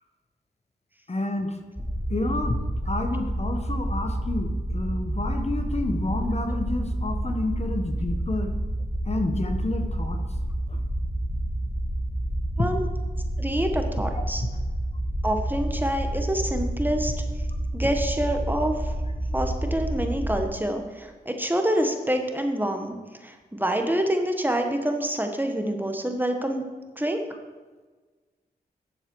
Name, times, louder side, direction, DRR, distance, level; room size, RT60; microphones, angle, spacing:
voice 1, 1.1-1.6 2.1-2.6 2.8-8.5 9.1-10.2 10.7-10.8 12.6-12.7 14.4-14.5, left 2 dB, 40° left, 5 dB, 1.2 m, -29 dB
sound 1, 1.8-20.4, right 1 dB, 10° left, 1.5 m, -29 dB
voice 2, 13.4-14.4 15.2-17.1 17.7-18.9 19.3-23.0 23.2-26.6 27.0-27.2, right 1 dB, 10° right, 4 dB, 1.5 m, -26 dB
10.0 x 7.2 x 4.7 m, 1.3 s
cardioid pair, 50°, 17 cm